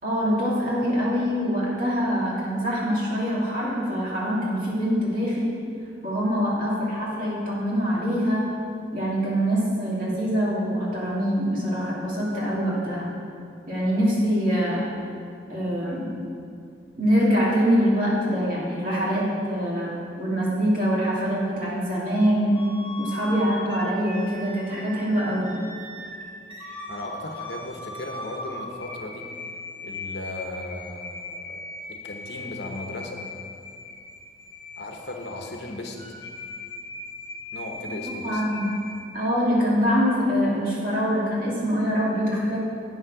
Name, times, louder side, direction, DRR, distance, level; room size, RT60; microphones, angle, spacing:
voice 1, 0.0-5.4 6.0-8.4 8.9-13.1 13.7-14.9 15.5-16.1 17.0-22.6 23.0-25.6 38.2-38.7 39.1-42.6, equal, 50° right, -6 dB, 2.6 m, -24 dB
sound 1, 22.5-39.0, left 2 dB, 25° left, 1.3 m, -39 dB
voice 2, 26.9-29.3 29.8-31.6 31.9-33.2 34.8-36.0 37.5-38.4, left 2 dB, 65° left, 2 dB, 1.0 m, -36 dB
8.8 x 6.4 x 6.0 m, 2.4 s
head